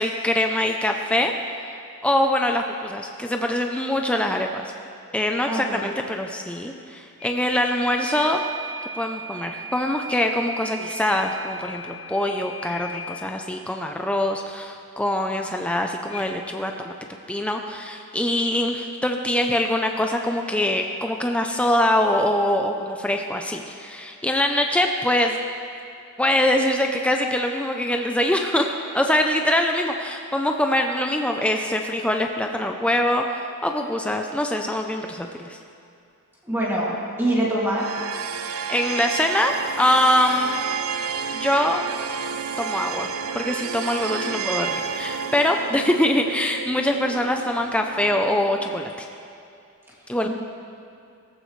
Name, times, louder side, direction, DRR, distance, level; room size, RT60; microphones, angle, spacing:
voice 1, 0.0-1.3 2.0-4.7 5.1-8.4 9.0-16.9 17.3-25.4 26.2-35.6 38.7-40.5 41.3-41.8 42.6-43.1 43.3-48.9 50.1-50.3, left 1 dB, 5° left, 3 dB, 0.5 m, -23 dB
voice 2, 5.5-5.9 36.4-36.9 37.2-37.9 44.4-44.5 50.2-50.3, right 1 dB, 10° right, -6 dB, 2.3 m, -24 dB
sound 1, 7.2-13.3 16.1-16.3, right 2 dB, 75° left, 1.4 m, -36 dB
sound 2, 37.8-48.8, right 6 dB, 70° right, 0.6 m, -31 dB
17.5 x 14.5 x 3.2 m, 2.5 s
head